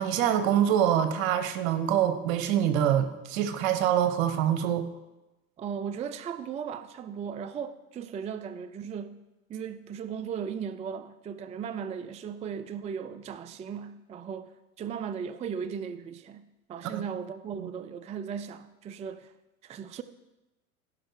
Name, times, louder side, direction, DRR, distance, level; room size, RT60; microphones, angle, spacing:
voice 1, 0.0-4.9 16.8-17.0 17.6-17.7, right 10 dB, 70° right, 1.1 m, -25 dB
voice 2, 5.6-9.2 9.5-19.3 19.6-20.0, right 7 dB, 15° right, 0.4 m, -37 dB
15.5 x 5.6 x 4.7 m
hypercardioid pair, 85°, 40 cm